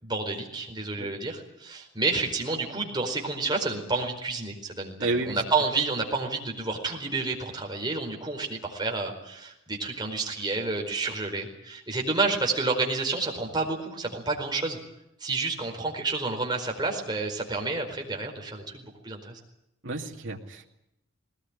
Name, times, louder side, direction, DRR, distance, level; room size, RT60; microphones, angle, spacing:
voice 1, 0.0-14.8 15.2-19.4, right 3 dB, 20° right, 1 dB, 4.6 m, -30 dB
voice 2, 5.0-5.4 19.8-20.7, right 2 dB, 65° right, 2 dB, 2.5 m, -31 dB
20.5 x 19.5 x 10.0 m, 0.83 s
head